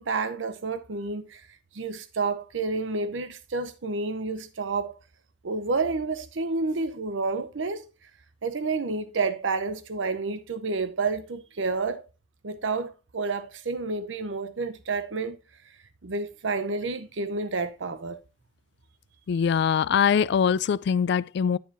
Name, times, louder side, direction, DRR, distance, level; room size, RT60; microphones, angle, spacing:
voice 1, 0.0-1.4 1.7-4.9 5.4-7.9 8.4-12.0 12.4-15.4 16.0-18.2, right 3 dB, 85° right, 0.7 m, -29 dB
voice 2, 19.3-21.6, left 7 dB, 65° left, 0.3 m, -23 dB
8.9 x 7.3 x 2.7 m
head